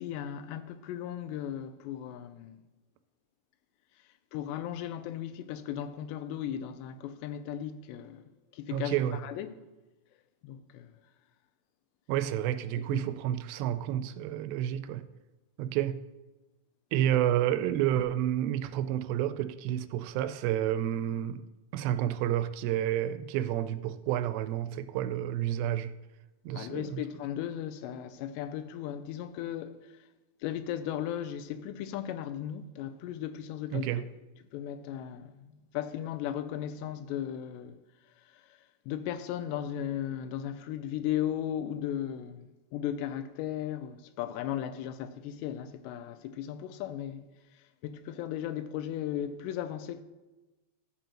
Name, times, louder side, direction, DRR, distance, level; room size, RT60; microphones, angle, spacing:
voice 1, 0.0-2.6 4.3-8.2 8.5-9.5 10.4-10.9 12.7-13.0 26.5-30.0 30.4-34.1 34.5-37.8 38.3-38.6 38.9-47.2 47.8-50.0, left 10 dB, 90° left, 2.8 m, -36 dB
voice 2, 8.7-9.2 12.1-15.1 15.6-16.1 16.9-21.4 21.7-26.0 26.5-27.1 33.7-34.1, right 11 dB, 85° right, 2.7 m, -30 dB
15.0 x 7.6 x 2.9 m
omnidirectional pair, 4.9 m